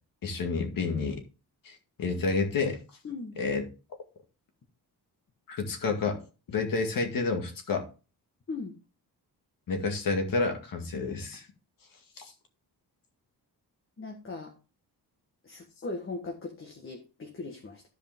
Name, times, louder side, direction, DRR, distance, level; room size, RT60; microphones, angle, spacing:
voice 1, 0.2-1.2 1.6-2.8 3.4-3.7 5.5-6.2 6.5-7.9 9.7-11.5 12.2-12.3, left 4 dB, 60° left, 2.1 m, -29 dB
voice 2, 3.0-3.4 8.5-8.7 14.0-14.5 15.4-17.8, left 3 dB, 35° left, 1.5 m, -39 dB
13.5 x 5.2 x 3.6 m
wide cardioid pair, 165°, 38 cm